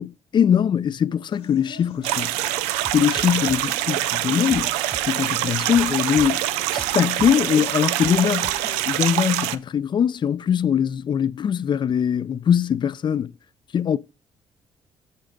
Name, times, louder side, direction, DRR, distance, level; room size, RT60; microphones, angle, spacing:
voice 1, 0.0-2.3 2.9-13.3 13.7-14.0, left 8 dB, 45° left, 0.4 m, -22 dB
sound 1, 1.3-9.3, left 4 dB, 80° left, 1.4 m, -46 dB
sound 2, 2.0-9.6, right 14 dB, 85° right, 0.4 m, -25 dB
sound 3, 2.8-5.5 5.7-8.8 9.1-9.3, right 2 dB, 15° right, 0.6 m, -40 dB
8.0 x 6.5 x 3.7 m
hypercardioid pair, 50°, 11 cm